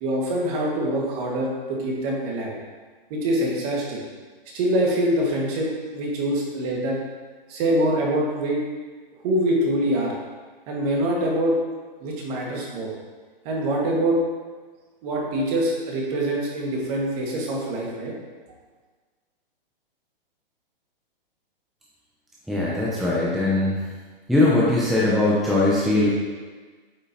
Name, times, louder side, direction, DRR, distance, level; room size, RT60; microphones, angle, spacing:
voice 1, 0.0-2.5 3.1-4.0 4.5-7.0 7.5-8.6 9.2-10.1 10.7-11.6 12.0-12.9 13.5-14.2 15.0-18.1, right 1 dB, 40° right, -2 dB, 1.8 m, -24 dB
voice 2, 22.5-23.8 24.3-26.1, left 2 dB, ahead, -6 dB, 0.8 m, -20 dB
8.4 x 5.3 x 2.9 m, 1.4 s
hypercardioid pair, 135°, 29 cm